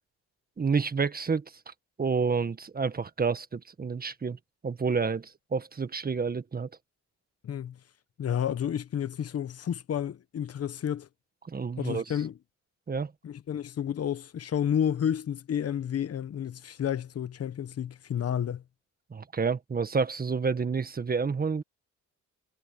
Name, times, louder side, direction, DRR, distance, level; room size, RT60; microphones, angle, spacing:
voice 1, 0.6-1.7 2.0-4.4 4.6-6.7 11.5-12.0 12.9-13.1 19.1-21.6, right 5 dB, 30° right, 1.5 m, -29 dB
voice 2, 7.4-7.8 8.2-11.1 11.8-12.3 13.2-18.6, left 9 dB, 55° left, 1.2 m, -31 dB
cardioid pair, 90°, 30 cm